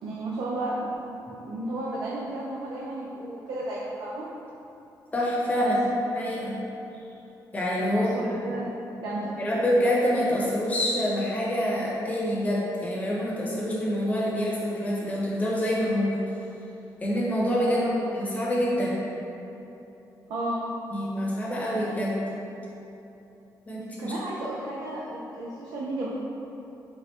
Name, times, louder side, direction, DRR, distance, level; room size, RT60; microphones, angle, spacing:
voice 1, 0.0-4.2 5.6-5.7 7.9-8.7 9.0-9.3 17.6-17.9 20.3-20.7 24.0-26.1, right 1 dB, 80° right, -6 dB, 0.5 m, -33 dB
voice 2, 5.1-5.8 6.1-6.5 7.5-8.1 8.4-8.5 9.4-16.2 17.0-17.8 18.1-19.0 20.9-22.2 23.7-24.1, equal, 20° left, -6 dB, 0.9 m, -26 dB
4.5 x 2.4 x 3.2 m, 2.9 s
cardioid pair, 110°, 7 cm